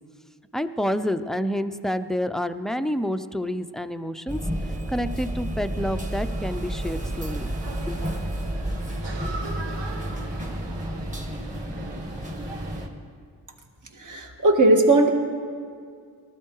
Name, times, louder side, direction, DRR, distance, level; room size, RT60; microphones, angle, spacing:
voice 1, 0.5-4.4 4.9-7.5 7.9-8.0, equal, ahead, 9 dB, 0.5 m, -28 dB
sound 1, 4.3-12.9, equal, 20° right, 1.8 m, -31 dB
sound 2, 5.8-12.9, right 3 dB, 85° right, 1.3 m, -40 dB
voice 2, 13.9-15.1, right 2 dB, 45° right, 3 dB, 1.8 m, -18 dB
19.5 x 13.5 x 4.7 m, 2.2 s
cardioid pair, 75°, 42 cm